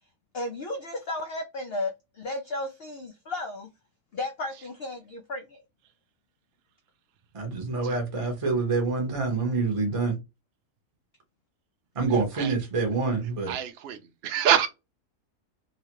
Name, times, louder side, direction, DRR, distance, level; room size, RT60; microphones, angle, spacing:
voice 1, 0.3-3.7 4.1-5.6, left 2 dB, 75° left, 0.5 m, -34 dB
voice 2, 7.3-10.1 11.9-13.5, right 4 dB, 30° right, 0.8 m, -26 dB
voice 3, 13.5-14.0 14.2-14.7, right 10 dB, 65° right, 0.6 m, -25 dB
2.9 x 2.3 x 2.9 m
omnidirectional pair, 1.6 m